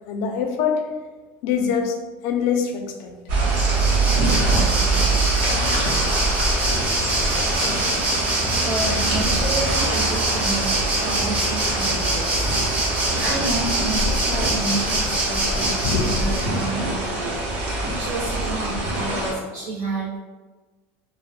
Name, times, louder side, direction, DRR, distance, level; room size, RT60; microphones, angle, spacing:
voice 1, 0.1-0.9 1.4-3.1 3.4-3.6 5.8-6.1 15.8-16.1 16.4-16.5, left 6 dB, 65° left, 4 dB, 0.4 m, -24 dB
Waves surf, 3.3-16.7, right 1 dB, 20° right, 0.6 m, -25 dB
sound 1, 3.3-19.3, right 2 dB, 80° right, 0.8 m, -24 dB
voice 2, 8.6-12.5 13.2-17.4 18.0-20.1, right 2 dB, 55° right, -8 dB, 1.0 m, -30 dB
2.1 x 2.0 x 3.1 m, 1.3 s
supercardioid pair, 135°, 7 cm